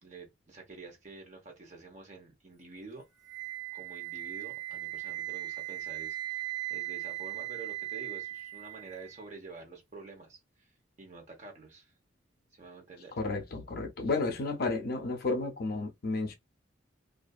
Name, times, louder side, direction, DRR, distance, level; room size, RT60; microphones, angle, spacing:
voice 1, 0.0-3.0 3.7-10.7 11.0-11.9 12.5-13.1, right 3 dB, 35° right, 0.9 m, -49 dB
Wind instrument woodwind instrument, 3.2-9.2, right 19 dB, 20° right, 0.4 m, -38 dB
voice 2, 13.1-16.4, left 3 dB, 45° left, 0.4 m, -32 dB
2.5 x 2.4 x 2.3 m
head